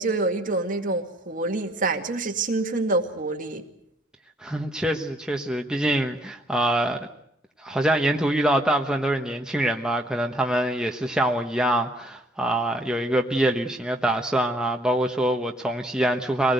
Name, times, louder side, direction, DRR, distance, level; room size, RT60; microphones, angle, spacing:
voice 1, 0.0-3.6, right 2 dB, 45° right, 4 dB, 2.1 m, -26 dB
voice 2, 4.4-7.1 7.6-16.5, right 1 dB, 5° right, 2 dB, 1.1 m, -24 dB
24.0 x 19.0 x 8.0 m, 0.74 s
head